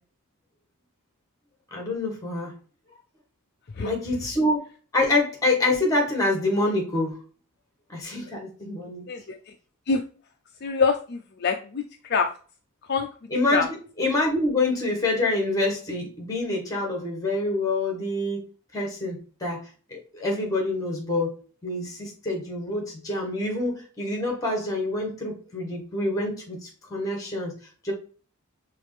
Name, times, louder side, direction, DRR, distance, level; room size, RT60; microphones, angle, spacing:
voice 1, 1.7-2.5 3.8-4.7 4.9-7.2 7.9-9.1 13.3-13.6 14.0-18.4 18.7-19.6 19.9-21.3 21.6-27.5 27.8-27.9, left 2 dB, 15° left, 1 dB, 1.6 m, -26 dB
voice 2, 10.6-11.8 12.1-12.3 12.9-13.1 13.5-13.6, left 5 dB, 45° left, 4 dB, 0.4 m, -24 dB
4.8 x 3.2 x 3.3 m, 0.39 s
head